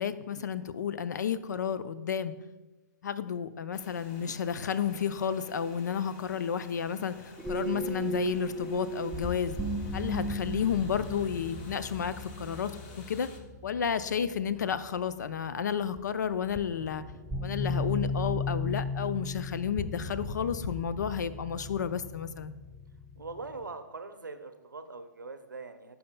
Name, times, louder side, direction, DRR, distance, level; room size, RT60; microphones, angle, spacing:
voice 1, 0.0-2.3 3.0-9.6 9.9-13.3 13.6-17.0 17.4-22.5, left 7 dB, 65° left, 14 dB, 0.4 m, -32 dB
sound 1, 3.7-13.4, left 3 dB, 35° left, 0.9 m, -52 dB
sound 2, 7.4-14.3 16.0-16.1 16.6-23.6, left 1 dB, ahead, 0.4 m, -36 dB
voice 2, 23.2-26.0, right 3 dB, 85° right, 9 dB, 0.7 m, -42 dB
14.5 x 5.6 x 2.2 m, 1.1 s
figure-of-eight pair, 125°, 10 cm